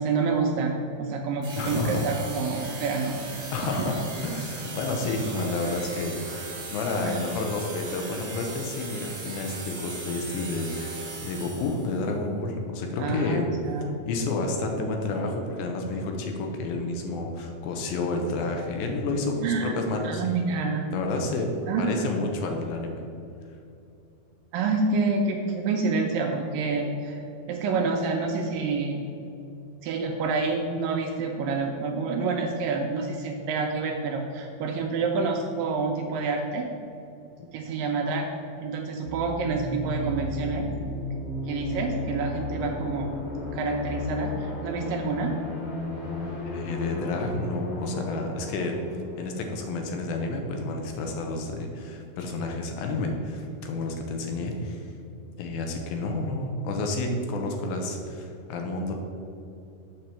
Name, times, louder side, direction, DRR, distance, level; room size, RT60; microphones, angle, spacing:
voice 1, 0.0-3.2 3.6-3.9 7.0-7.2 13.0-14.0 19.4-19.7 20.0-20.9 21.7-22.1 24.5-27.2 27.5-29.1 29.8-36.7 37.5-38.3 38.6-40.7 41.5-43.1 43.5-45.3, right 4 dB, 80° right, 2 dB, 2.1 m, -28 dB
sound 1, 1.4-12.0, right 3 dB, 45° right, 1.8 m, -38 dB
voice 2, 1.6-2.1 3.5-13.5 13.8-20.4 20.9-21.5 21.8-23.1 46.4-48.7 49.2-54.9 55.4-58.9, left 2 dB, 80° left, 3 dB, 2.5 m, -30 dB
sound 2, 39.1-50.6, left 2 dB, 60° left, 3.0 m, -34 dB
7.6 x 4.6 x 6.8 m, 2.7 s
omnidirectional pair, 4.4 m